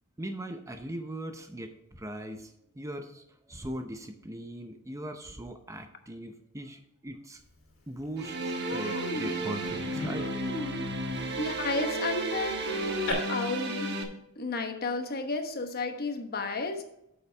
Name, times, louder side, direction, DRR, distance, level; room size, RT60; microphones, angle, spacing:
voice 1, 0.2-7.4 7.9-10.3, right 1 dB, 15° right, 6 dB, 0.7 m, -40 dB
Human voice, 7.6-7.7 8.0-8.2 8.6-13.1, left 2 dB, 65° left, 2.5 m, -39 dB
sound 1, 8.2-14.0, right 2 dB, 50° right, 1.2 m, -33 dB
voice 2, 11.4-13.9 14.4-16.8, left 3 dB, 45° left, 6 dB, 1.1 m, -32 dB
9.2 x 7.0 x 3.4 m, 0.80 s
head